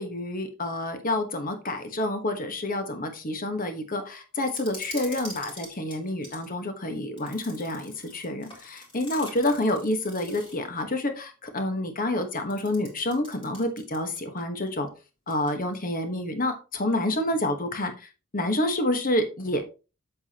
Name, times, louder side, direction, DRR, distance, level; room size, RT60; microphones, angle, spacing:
voice 1, 0.0-14.9 15.3-18.1 18.3-19.6, left 1 dB, 40° left, 6 dB, 1.3 m, -28 dB
sound 1, 4.4-6.5 7.2-10.7 12.4-14.4 14.7-14.8 15.3-15.8, left 1 dB, 25° left, 3.4 m, -44 dB
8.1 x 7.1 x 2.9 m, 0.32 s
head